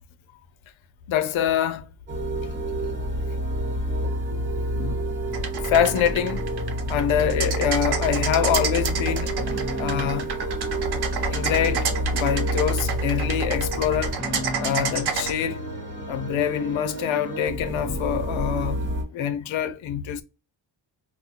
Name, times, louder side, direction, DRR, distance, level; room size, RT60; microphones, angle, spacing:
voice 1, 1.1-1.9 4.7-5.0 5.7-6.4 6.9-9.4 9.8-10.3 11.3-14.2 14.6-15.6 16.1-18.8 19.1-20.2, left 9 dB, 90° left, 0.6 m, -25 dB
Urban snow, 2.1-19.0, right 1 dB, 25° right, 1.3 m, -28 dB
sound 1, 5.3-15.3, right 5 dB, 55° right, 0.8 m, -30 dB
4.0 x 2.1 x 2.8 m
wide cardioid pair, 135°, 46 cm